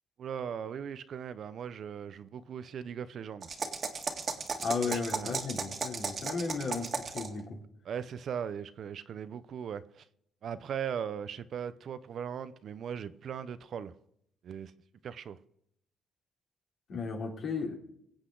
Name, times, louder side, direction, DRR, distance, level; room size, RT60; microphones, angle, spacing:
voice 1, 0.2-3.5 4.9-5.3 7.9-10.1 10.4-13.9 14.4-14.7 15.0-15.4, right 8 dB, 60° right, 0.7 m, -39 dB
sound 1, 3.4-7.4, right 5 dB, 45° right, 1.8 m, -35 dB
voice 2, 4.6-7.6 16.9-17.8, left 4 dB, 65° left, 3.2 m, -34 dB
23.0 x 8.1 x 3.9 m
cardioid pair, 90°, 0 cm